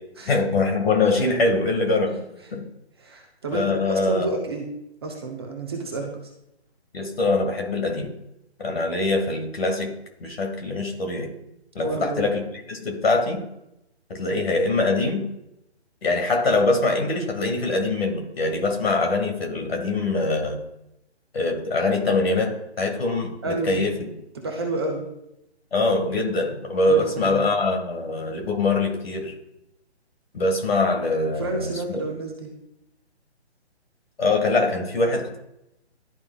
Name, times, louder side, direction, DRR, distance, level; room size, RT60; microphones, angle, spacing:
voice 1, 0.3-2.1 2.5-2.7 3.5-4.4 6.9-8.1 8.6-10.0 10.2-11.3 11.8-13.5 14.1-15.3 16.0-20.6 21.3-24.1 25.7-29.3 30.3-32.0 34.2-35.4, left 3 dB, 60° left, 4 dB, 1.8 m, -23 dB
voice 2, 3.0-4.7 5.0-6.2 11.8-12.4 23.4-23.8 24.3-25.0 26.9-27.4 31.4-32.5, right 2 dB, 20° right, 1 dB, 0.7 m, -30 dB
12.0 x 4.7 x 2.3 m, 0.84 s
hypercardioid pair, 155°, 34 cm